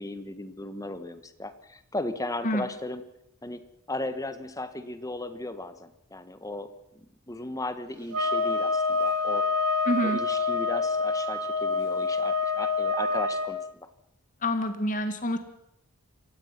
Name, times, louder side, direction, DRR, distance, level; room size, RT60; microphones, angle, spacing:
voice 1, 0.0-3.0 3.4-3.6 3.9-9.5 9.8-13.9, left 2 dB, 15° left, 10 dB, 1.4 m, -36 dB
sound 1, 8.1-13.5, left 3 dB, 85° right, 2.3 m, -27 dB
voice 2, 9.9-10.2 14.4-15.4, left 1 dB, 35° left, 8 dB, 2.0 m, -27 dB
28.0 x 16.0 x 6.0 m, 0.81 s
head